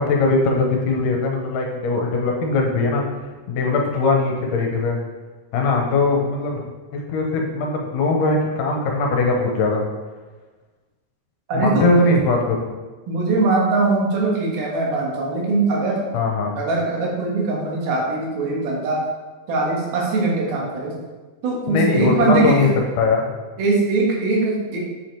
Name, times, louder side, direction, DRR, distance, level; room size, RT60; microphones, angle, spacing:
voice 1, 0.0-3.0 3.5-5.0 5.5-6.7 6.9-9.8 11.5-12.7 16.1-16.6 21.7-22.7 23.0-23.3, left 3 dB, 70° left, 1 dB, 2.4 m, -20 dB
voice 2, 11.5-12.1 13.1-16.0 16.6-19.0 19.5-21.0 21.4-22.7 23.6-24.8, right 3 dB, 85° right, -2 dB, 3.4 m, -21 dB
7.9 x 5.0 x 4.5 m, 1.3 s
omnidirectional pair, 4.2 m